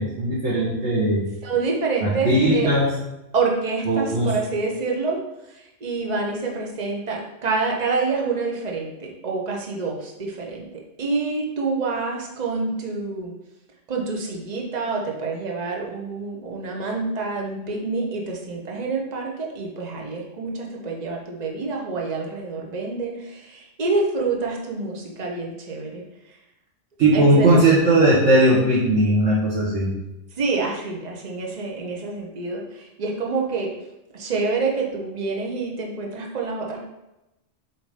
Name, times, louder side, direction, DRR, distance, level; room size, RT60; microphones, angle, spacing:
voice 1, 0.0-1.3 2.0-2.9 3.9-4.3 27.0-29.9, right 1 dB, 75° right, -7 dB, 1.7 m, -18 dB
voice 2, 1.4-2.7 3.3-5.2 5.5-13.3 13.9-26.4 27.1-27.7 30.3-33.7 34.1-36.8, right 4 dB, 35° right, -1 dB, 1.1 m, -27 dB
7.8 x 3.0 x 5.0 m, 0.94 s
omnidirectional pair, 1.3 m